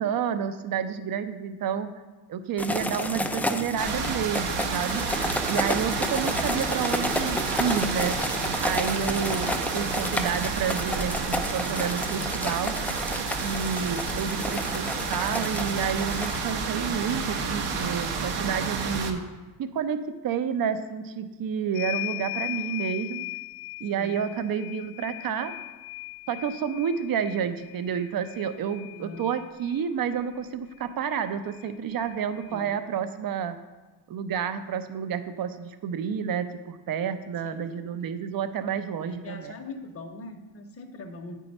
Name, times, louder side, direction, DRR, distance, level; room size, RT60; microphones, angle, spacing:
voice 1, 0.0-1.9 2.3-5.0 5.5-8.2 8.6-12.7 13.4-19.2 19.6-20.0 20.2-23.3 23.8-25.5 26.3-33.6 34.1-39.5, right 7 dB, 50° right, 10 dB, 0.7 m, -30 dB
sound 1, 2.6-16.4, left 1 dB, 5° left, 0.4 m, -31 dB
sound 2, 3.8-19.1, right 5 dB, 70° right, 1.0 m, -30 dB
voice 2, 9.1-9.5 14.1-14.7 23.9-24.2 28.9-29.3 32.5-32.7 37.4-37.7 39.0-41.4, left 2 dB, 30° left, 4 dB, 0.9 m, -42 dB
sound 3, 21.7-29.9 31.1-31.2 31.5-32.6, left 24 dB, 55° left, 0.6 m, -38 dB
8.8 x 4.6 x 5.3 m, 1.2 s
cardioid pair, 115°, 44 cm